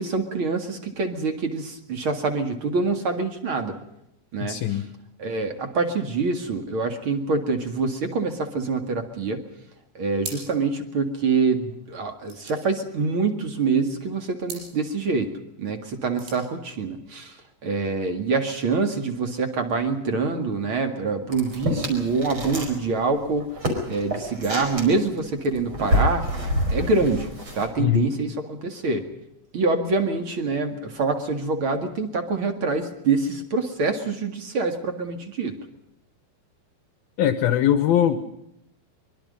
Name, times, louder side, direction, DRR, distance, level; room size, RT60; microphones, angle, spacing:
voice 1, 0.0-3.7 4.3-4.8 5.2-9.4 9.9-15.3 15.6-23.6 23.9-26.2 26.7-27.3 27.5-29.0 29.5-35.5, right 4 dB, 45° right, 7 dB, 1.7 m, -25 dB
voice 2, 4.4-4.9 27.8-28.1 37.2-38.2, left 10 dB, 75° left, 10 dB, 2.3 m, -21 dB
sound 1, 10.2-10.8 11.1-11.2 11.4-13.6 14.4-14.8 15.9-16.5, right 4 dB, 85° right, 7.6 m, -40 dB
sound 2, 21.3-22.8 23.0-27.7, left 1 dB, 30° right, 5.2 m, -27 dB
24.5 x 23.0 x 5.3 m, 0.80 s
omnidirectional pair, 5.4 m